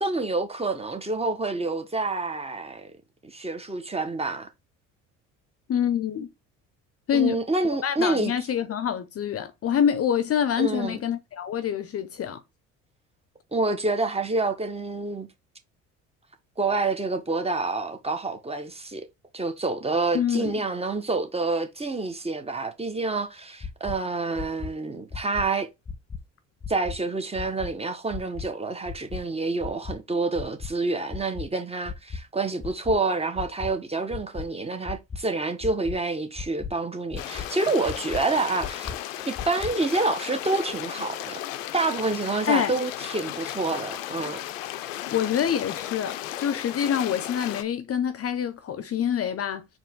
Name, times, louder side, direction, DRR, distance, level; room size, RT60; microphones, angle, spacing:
voice 1, 0.0-2.9 3.2-4.5 7.1-8.3 10.6-11.0 13.5-15.3 16.6-19.1 19.3-25.7 26.7-41.4 41.7-44.4, right 3 dB, 15° right, 1.1 m, -28 dB
voice 2, 5.7-6.3 7.1-7.4 7.8-12.4 20.1-20.5 42.5-42.8 45.1-49.7, left 8 dB, 40° left, 0.7 m, -26 dB
sound 1, 23.6-23.9 24.3-24.7 25.1-25.4 25.8-26.2 26.6-26.9 27.3-27.7 28.1-28.4 28.8-29.2 29.6-29.9 30.3-30.7 31.1-31.4 31.8-32.2 32.6-32.9 33.3-33.7 34.1-34.4 34.8-35.2 35.6-36.0 36.3-36.7 37.1-37.5 37.8-38.2 38.6-38.9 39.3-39.7, left 6 dB, 15° left, 1.0 m, -34 dB
sound 2, 37.2-47.6, left 13 dB, 85° left, 0.5 m, -35 dB
4.5 x 2.9 x 3.7 m
hypercardioid pair, 60°, 38 cm